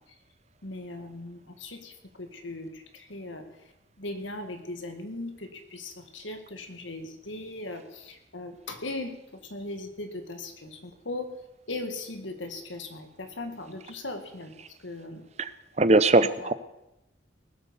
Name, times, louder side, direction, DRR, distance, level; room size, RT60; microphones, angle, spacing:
voice 1, 0.6-11.3 11.7-14.5 14.8-15.2 16.1-16.5, left 2 dB, 80° left, 6 dB, 2.0 m, -39 dB
voice 2, 15.8-16.5, right 2 dB, 35° right, 14 dB, 0.6 m, -20 dB
19.0 x 8.2 x 7.0 m, 0.92 s
head